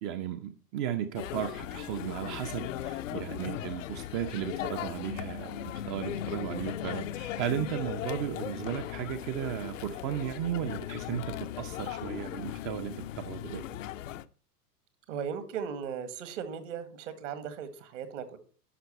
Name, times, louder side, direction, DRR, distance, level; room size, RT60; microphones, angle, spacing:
voice 1, 0.0-13.6, right 10 dB, 30° right, 7 dB, 0.7 m, -35 dB
sound 1, 1.1-14.2, left 12 dB, 55° left, 0.6 m, -38 dB
voice 2, 15.1-18.4, right 7 dB, 50° right, 11 dB, 1.8 m, -37 dB
11.0 x 6.4 x 4.3 m, 0.41 s
figure-of-eight pair, 95°, 47 cm